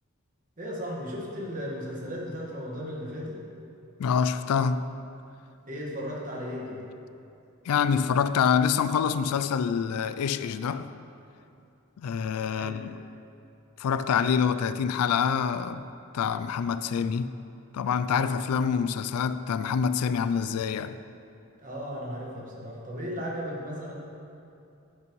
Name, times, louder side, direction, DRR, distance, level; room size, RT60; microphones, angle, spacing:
voice 1, 0.6-3.4 5.7-6.8 12.5-12.8 21.6-23.9, equal, 35° right, 1.5 m, -35 dB
voice 2, 4.0-4.8 7.7-10.9 12.0-12.9 13.8-15.8 16.1-17.3 17.7-21.0, left 6 dB, 90° left, 0.3 m, -26 dB
10.5 x 8.4 x 3.1 m
head